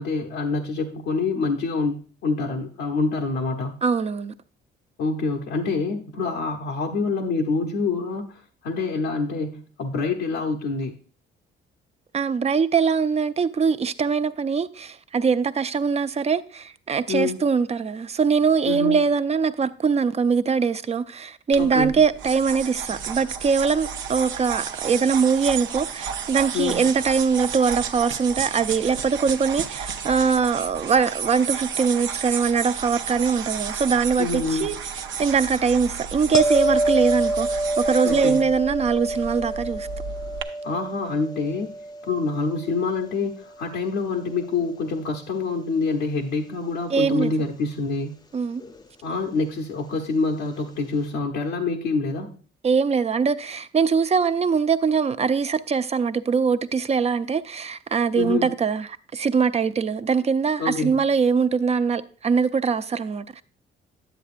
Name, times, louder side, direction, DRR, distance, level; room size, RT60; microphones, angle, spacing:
voice 1, 0.0-3.8 5.0-10.9 17.1-17.4 18.7-19.0 21.6-22.0 26.5-26.8 34.2-34.8 38.0-38.5 40.6-41.7 42.1-48.1 49.0-52.4 58.1-58.5 60.6-61.0, left 4 dB, 85° left, 0.9 m, -26 dB
voice 2, 3.8-4.3 12.1-34.8 35.2-39.9 46.9-47.3 48.3-48.6 52.6-63.4, right 5 dB, 30° right, 0.5 m, -22 dB
sound 1, 21.5-40.4, right 7 dB, 75° right, 0.7 m, -32 dB
sound 2, 36.3-43.3 48.6-48.8, right 1 dB, 20° left, 0.6 m, -27 dB
10.0 x 7.8 x 2.5 m
cardioid pair, 90°, 20 cm